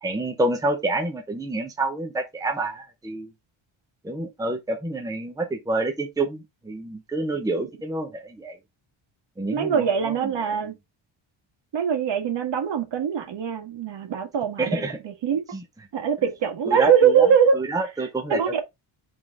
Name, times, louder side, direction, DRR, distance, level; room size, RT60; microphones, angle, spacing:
voice 1, 0.0-3.3 4.0-8.6 9.4-10.6 14.6-15.0 15.5-15.6 16.7-17.3 17.5-18.5, right 2 dB, 5° right, 0.9 m, -28 dB
voice 2, 9.5-10.8 11.7-15.4 15.9-17.5 18.3-18.6, right 7 dB, 60° right, 1.8 m, -22 dB
8.5 x 3.7 x 3.7 m
cardioid pair, 150°, 48 cm